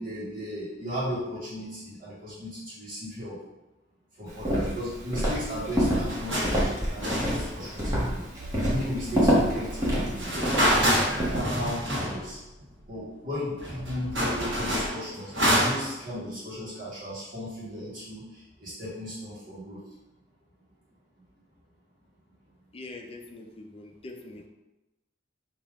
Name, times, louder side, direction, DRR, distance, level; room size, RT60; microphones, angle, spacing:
voice 1, 0.0-3.4 4.2-8.2 8.7-10.6 11.1-12.4 12.8-19.8, equal, 50° right, -10 dB, 1.6 m, -36 dB
Walk footsteps, 4.4-11.4, equal, 15° right, 1.2 m, -27 dB
sound 1, 6.1-6.6 7.0-8.0 10.2-12.3 12.6-12.7 13.3-13.4 13.6-16.0, equal, 80° right, 1.3 m, -27 dB
sound 2, 7.0-7.8 8.4-13.1 13.7-14.9, right 1 dB, 65° right, 0.4 m, -45 dB
voice 2, 22.7-24.5, left 2 dB, 30° left, 3 dB, 0.5 m, -43 dB
3.7 x 2.9 x 4.8 m, 1.0 s
head